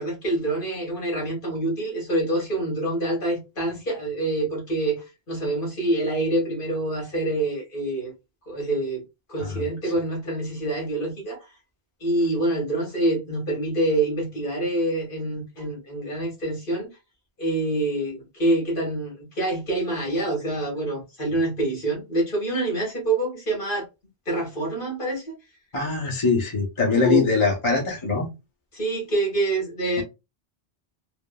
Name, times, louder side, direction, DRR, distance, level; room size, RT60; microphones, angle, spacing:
voice 1, 0.0-8.1 8.5-11.4 12.0-16.9 17.4-23.9 24.2-25.4 27.0-27.2 28.7-30.0, right 2 dB, 55° left, 1.5 m, -26 dB
voice 2, 25.7-28.3, left 4 dB, 30° left, 0.7 m, -22 dB
3.3 x 2.0 x 2.2 m
omnidirectional pair, 1.1 m